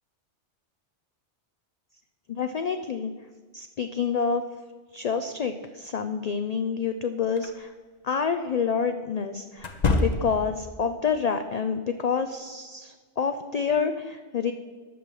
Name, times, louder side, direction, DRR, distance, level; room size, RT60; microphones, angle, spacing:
voice 1, 2.3-3.1 3.5-4.4 4.9-7.7 8.0-9.7 10.0-14.5, left 6 dB, 60° left, 8 dB, 0.4 m, -28 dB
sound 1, 7.4-7.5 9.6-10.6, left 3 dB, 40° left, 0.8 m, -25 dB
10.0 x 6.2 x 7.5 m, 1.5 s
omnidirectional pair, 1.2 m